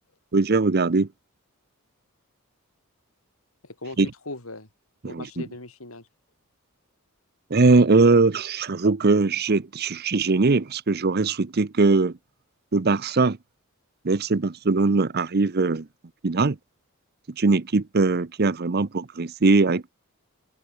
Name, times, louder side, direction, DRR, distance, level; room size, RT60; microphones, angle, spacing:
voice 1, 0.3-1.1 4.0-4.1 5.0-5.2 7.5-12.1 12.7-13.4 14.0-15.9 16.2-16.6 17.4-19.9, right 3 dB, 50° right, 0.7 m, -21 dB
voice 2, 3.6-4.7 5.0-6.1, left 2 dB, 80° left, 4.6 m, -39 dB
open air
head